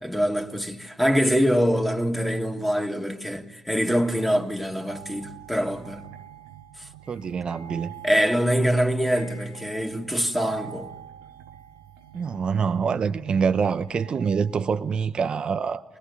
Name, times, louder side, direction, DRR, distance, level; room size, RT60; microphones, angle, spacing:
voice 1, 0.0-6.0 8.0-10.9, equal, ahead, 2.6 m, -24 dB
sound 1, 3.7-14.8, right 9 dB, 85° right, 1.0 m, -45 dB
voice 2, 7.1-7.9 12.1-15.8, right 6 dB, 50° right, 0.8 m, -25 dB
23.0 x 21.0 x 9.7 m
hypercardioid pair, 55°, 2 cm